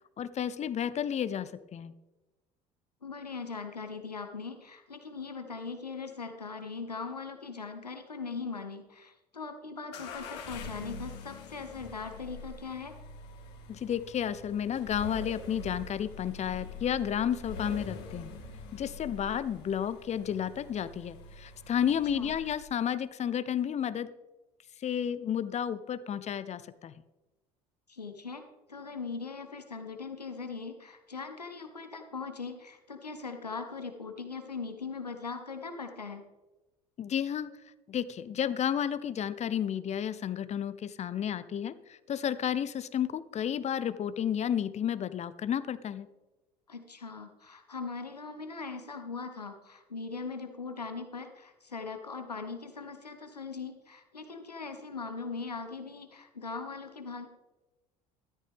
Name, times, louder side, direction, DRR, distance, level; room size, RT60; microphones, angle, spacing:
voice 1, 0.2-1.9 13.7-18.3 18.7-24.1 24.8-27.0 37.0-37.5 37.9-46.1, left 9 dB, 35° left, 16 dB, 0.7 m, -32 dB
voice 2, 3.0-13.0 22.1-22.3 27.9-28.4 28.7-36.3 46.7-57.3, left 4 dB, 90° left, 6 dB, 1.0 m, -40 dB
sound 1, 9.9-22.8, left 3 dB, 55° left, 2.1 m, -45 dB
13.5 x 12.5 x 3.5 m, 1.1 s
figure-of-eight pair, 60°, 20 cm